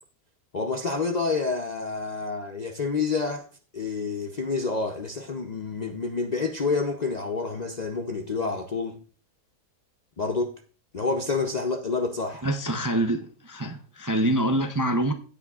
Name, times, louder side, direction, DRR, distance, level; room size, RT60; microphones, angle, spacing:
voice 1, 0.5-3.5 3.7-9.0 10.2-10.5 10.9-12.5, left 4 dB, 45° left, 0.6 m, -28 dB
voice 2, 12.4-15.1, right 1 dB, 20° right, 0.5 m, -25 dB
16.0 x 8.3 x 2.4 m
omnidirectional pair, 1.5 m